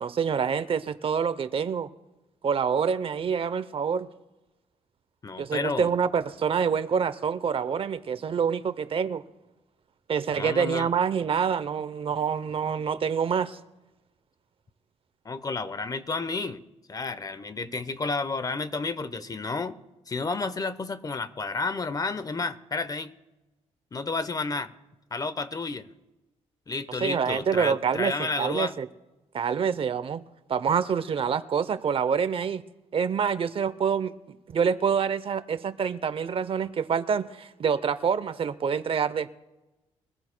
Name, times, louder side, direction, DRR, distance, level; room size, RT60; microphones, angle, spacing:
voice 1, 0.0-1.9 2.4-4.1 5.4-9.2 10.1-13.6 27.0-28.9 29.3-32.6 32.9-34.1 34.5-39.3, right 6 dB, 50° right, 14 dB, 0.7 m, -26 dB
voice 2, 5.2-5.9 10.4-10.9 15.2-16.6 16.9-19.8 20.1-23.1 23.9-24.7 25.1-25.9 26.7-28.7, left 3 dB, 30° left, 13 dB, 0.8 m, -31 dB
23.0 x 15.0 x 2.2 m, 1.0 s
cardioid pair, 85°, 12 cm